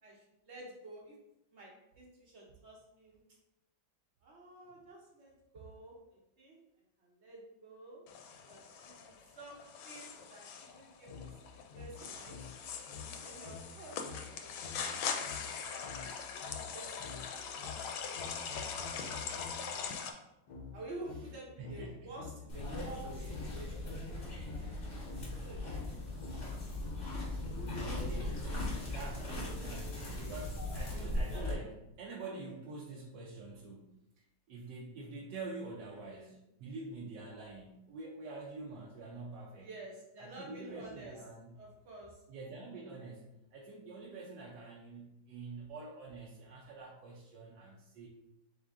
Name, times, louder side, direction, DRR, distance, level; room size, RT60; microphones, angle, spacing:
voice 1, 0.0-1.2 1.5-3.2 4.2-6.0 6.4-6.6 7.0-8.1 8.5-12.4 13.0-14.5 15.2-18.8 19.2-20.0 20.7-23.9 24.6-24.7 25.4-26.1 27.1-27.6 32.2-32.4 36.1-36.3 39.6-41.2 41.6-42.2, right 2 dB, 50° right, -3 dB, 0.9 m, -51 dB
sound 1, 8.1-20.1, left 6 dB, 80° left, 1.3 m, -42 dB
sound 2, 11.1-19.8 20.5-29.1, left 5 dB, 60° left, 1.1 m, -49 dB
voice 2, 21.6-22.2 27.7-34.0 34.5-39.7 40.2-41.6 42.3-48.1, right 3 dB, 70° right, -4 dB, 1.2 m, -47 dB
sound 3, 22.5-31.5, left 1 dB, 40° left, 1.4 m, -39 dB
3.8 x 3.5 x 3.5 m, 0.89 s
omnidirectional pair, 2.2 m